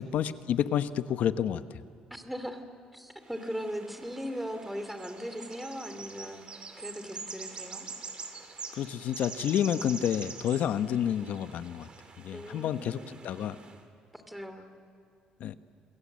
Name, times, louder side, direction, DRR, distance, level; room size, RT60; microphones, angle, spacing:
voice 1, 0.0-1.6 8.7-11.9 12.2-13.6 15.4-15.6, left 9 dB, 70° left, 12 dB, 1.0 m, -29 dB
voice 2, 2.1-2.6 2.9-7.9 12.3-13.6 14.1-14.7, equal, 5° right, 8 dB, 2.7 m, -39 dB
sound 1, 3.2-13.8, right 4 dB, 35° right, 2.9 m, -45 dB
28.0 x 21.5 x 7.6 m, 2.7 s
cardioid pair, 105°, 3 cm